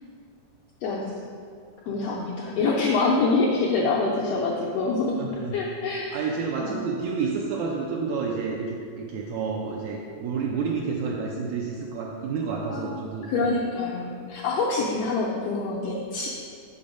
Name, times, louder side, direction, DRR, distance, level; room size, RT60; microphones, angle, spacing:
voice 1, 1.9-5.2 5.5-6.2 6.6-6.8 12.7-13.0 13.2-16.3, left 3 dB, 80° left, -3 dB, 1.5 m, -25 dB
voice 2, 5.2-5.6 6.1-13.6, right 5 dB, 75° right, -2 dB, 1.9 m, -30 dB
5.9 x 5.4 x 5.0 m, 2.2 s
omnidirectional pair, 3.5 m